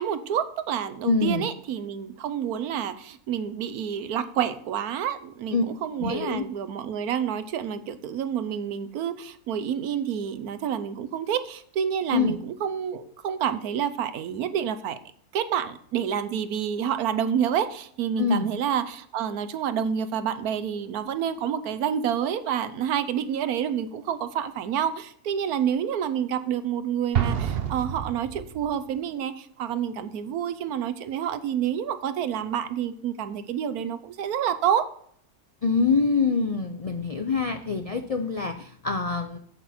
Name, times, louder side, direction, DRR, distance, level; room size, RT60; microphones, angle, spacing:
voice 1, 0.0-15.0 15.3-34.8, right 9 dB, 80° right, 12 dB, 1.3 m, -28 dB
voice 2, 1.0-1.5 5.5-5.6 6.0-6.4 12.1-12.4 18.2-18.5 35.6-39.4, left 4 dB, 65° left, 7 dB, 0.3 m, -25 dB
Explosion, 27.1-28.9, right 8 dB, 50° right, 0.9 m, -28 dB
8.0 x 7.8 x 4.3 m, 0.62 s
omnidirectional pair, 1.6 m